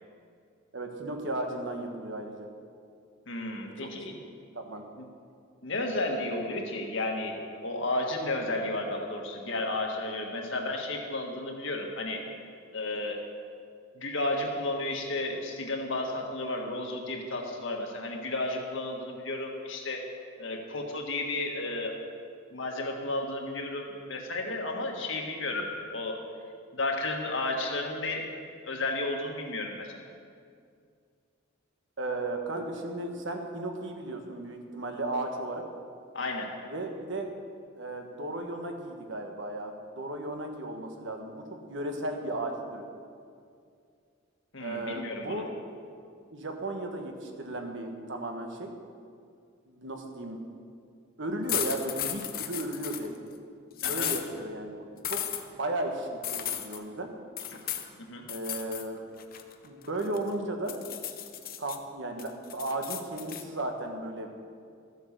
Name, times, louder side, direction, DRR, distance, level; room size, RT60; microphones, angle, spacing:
voice 1, 0.7-2.5 3.6-3.9 4.5-4.8 32.0-35.6 36.6-37.3 37.8-42.8 44.6-45.5 46.3-48.7 49.7-50.4 51.2-53.1 53.9-57.1 58.3-59.0 59.6-60.8 61.6-64.3, right 1 dB, 60° right, 3 dB, 1.5 m, -35 dB
voice 2, 3.3-4.2 5.6-12.2 12.7-13.2 13.9-20.0 20.4-21.9 22.5-25.6 25.9-26.2 26.7-28.3 28.6-29.9 36.1-36.5 44.5-45.4 53.8-54.1 57.5-57.6 58.0-58.2, left 2 dB, 65° left, 1 dB, 1.8 m, -33 dB
sound 1, 51.5-53.1 53.8-54.2 55.0-55.4 56.2-56.8 57.4-57.9 58.3-58.9 59.2-60.3 60.7-61.8 62.2-63.4, left 11 dB, 45° left, 0.8 m, -34 dB
14.0 x 8.0 x 6.8 m, 2.3 s
head